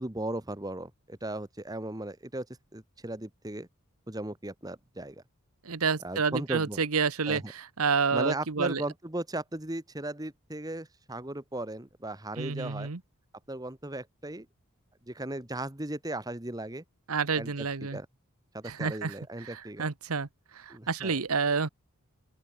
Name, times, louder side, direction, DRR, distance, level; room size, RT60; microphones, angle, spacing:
voice 1, 0.0-2.5 2.7-3.7 4.1-5.2 6.0-6.8 7.2-7.5 8.1-12.9 13.5-14.5 15.0-16.8 17.3-18.1 18.5-19.9 20.7-21.2, right 1 dB, 15° right, 1.4 m, -37 dB
voice 2, 5.6-8.8 12.4-13.0 17.1-18.0 18.7-19.1 19.4-20.3 20.5-21.7, right 5 dB, 85° right, 1.1 m, -29 dB
open air
head